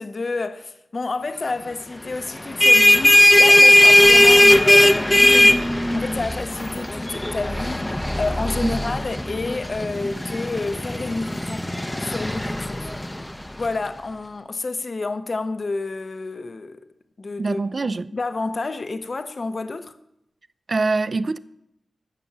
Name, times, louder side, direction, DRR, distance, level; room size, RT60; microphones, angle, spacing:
voice 1, 0.0-5.7 5.9-11.7 12.0-12.9 13.6-16.9 17.2-17.6 18.1-19.9, left 3 dB, 45° left, 0.7 m, -29 dB
sound 1, 2.3-13.7, left 1 dB, 10° left, 0.6 m, -17 dB
voice 2, 17.4-18.1 20.7-21.4, right 3 dB, 45° right, 0.4 m, -24 dB
13.0 x 6.2 x 7.2 m
wide cardioid pair, 115°, 0 cm